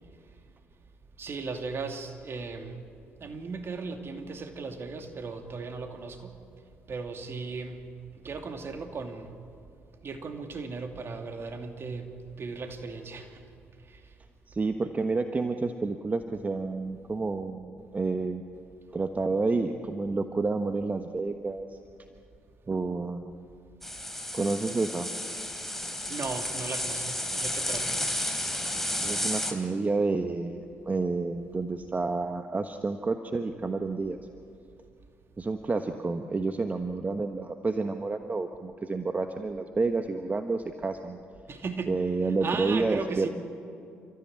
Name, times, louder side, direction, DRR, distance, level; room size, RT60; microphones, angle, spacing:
voice 1, 1.2-2.8 3.2-6.3 6.9-7.9 8.2-9.3 10.0-12.1 12.4-13.4 26.1-28.0 41.5-42.0 42.4-43.3, right 4 dB, 50° right, 6 dB, 2.7 m, -36 dB
voice 2, 14.5-18.5 18.9-21.8 22.7-23.3 24.3-25.1 29.0-34.2 35.4-41.2 41.9-43.3, right 3 dB, 30° right, 7 dB, 1.3 m, -29 dB
sound 1, 23.8-29.5, left 1 dB, 5° left, 3.5 m, -32 dB
29.5 x 14.0 x 8.9 m, 2.5 s
hypercardioid pair, 50°, 5 cm